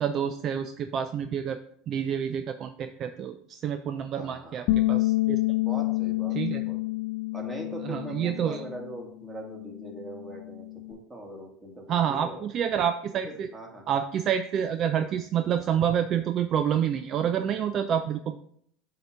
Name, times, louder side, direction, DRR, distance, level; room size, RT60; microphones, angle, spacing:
voice 1, 0.0-1.6 1.9-5.4 6.3-6.6 7.9-8.6 11.9-13.5 13.9-18.4, right 9 dB, 45° right, 9 dB, 0.4 m, -28 dB
voice 2, 4.1-4.6 5.6-6.8 7.3-12.4 13.2-13.9, right 1 dB, 15° right, 0 dB, 1.9 m, -41 dB
Bass guitar, 4.7-9.0 9.3-10.9, left 19 dB, 65° left, 0.5 m, -29 dB
7.7 x 2.8 x 5.0 m, 0.65 s
hypercardioid pair, 85°, 0 cm